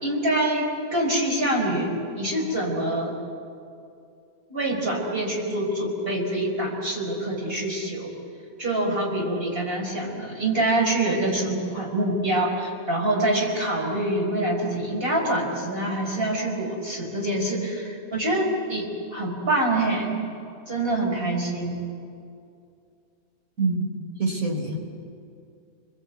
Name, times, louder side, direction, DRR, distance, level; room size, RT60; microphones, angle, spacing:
voice 1, 0.0-3.1 4.5-8.1 8.6-20.2 20.7-21.8, right 1 dB, 40° right, -1 dB, 5.3 m, -25 dB
voice 2, 24.2-24.8, right 3 dB, 60° right, 1 dB, 4.5 m, -25 dB
29.5 x 22.5 x 8.3 m, 2.5 s
omnidirectional pair, 1.6 m